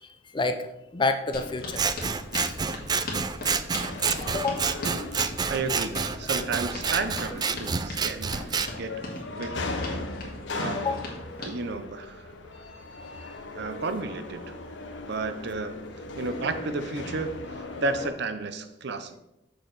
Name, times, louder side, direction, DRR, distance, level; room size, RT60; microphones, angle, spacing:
voice 1, 0.3-0.7 0.9-1.8 2.4-2.5 4.3-4.7 10.8-11.0, left 3 dB, 25° left, 8 dB, 0.6 m, -28 dB
sound 1, 1.3-18.1, left 2 dB, 70° left, 0.9 m, -39 dB
sound 2, 1.3-11.6, left 2 dB, 55° left, 1.8 m, -38 dB
Scissors, 1.7-8.7, right 5 dB, 20° right, 0.3 m, -28 dB
voice 2, 5.5-8.4 8.8-9.0 9.3-9.5 10.5-10.8 11.4-12.3 13.5-14.4 15.1-15.8 16.2-19.2, right 3 dB, 65° right, 9 dB, 0.7 m, -32 dB
6.6 x 6.5 x 4.0 m, 0.90 s
head